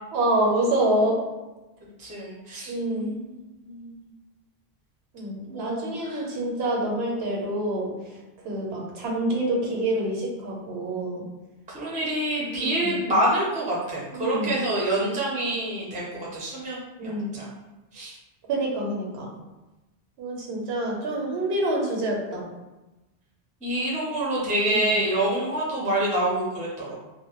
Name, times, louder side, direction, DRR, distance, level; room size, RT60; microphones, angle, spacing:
voice 1, 0.1-1.2 2.7-3.2 5.1-7.9 8.4-11.2 12.5-13.0 14.1-14.5 17.0-17.4 18.5-19.3 20.2-22.4 24.7-25.0, right 1 dB, 85° right, -2 dB, 0.9 m, -27 dB
voice 2, 2.0-4.1 5.5-6.2 11.7-16.0 16.3-17.5 17.9-18.1 23.6-27.0, right 1 dB, 10° right, -6 dB, 0.3 m, -27 dB
2.2 x 2.0 x 2.8 m, 1.1 s
omnidirectional pair, 1.1 m